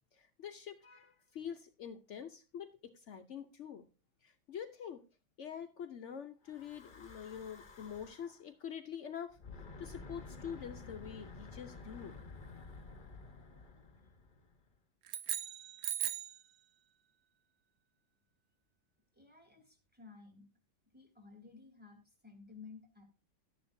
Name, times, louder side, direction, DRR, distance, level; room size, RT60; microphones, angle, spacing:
voice 1, 0.1-3.9 4.2-5.1 5.4-12.2, left 8 dB, 75° left, 7 dB, 0.6 m, -46 dB
Breathing / Wind, 6.4-8.4 9.3-14.7, left 3 dB, 35° left, 0.9 m, -51 dB
sound 1, 15.0-16.4, right 11 dB, 75° right, 1.4 m, -38 dB
voice 2, 19.1-20.5 20.9-23.0, left 5 dB, 5° right, 4 dB, 3.0 m, -55 dB
12.5 x 10.5 x 2.7 m, 0.31 s
omnidirectional pair, 2.2 m